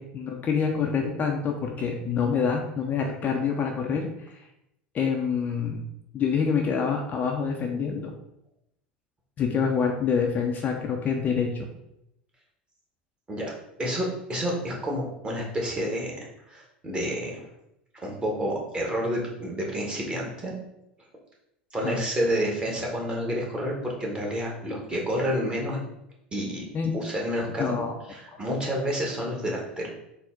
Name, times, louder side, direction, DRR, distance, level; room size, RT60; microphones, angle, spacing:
voice 1, 0.0-4.4 4.9-5.8 6.1-8.1 9.4-11.7 21.8-22.0 26.7-26.9 27.6-27.9, left 6 dB, 35° left, 2 dB, 0.5 m, -26 dB
voice 2, 13.8-16.2 16.5-17.4 18.0-20.6 21.7-25.8 26.3-26.6 26.9-27.7 28.1-29.9, equal, 20° right, -1 dB, 1.1 m, -29 dB
3.9 x 2.1 x 3.6 m, 0.82 s
hypercardioid pair, 80°, 5 cm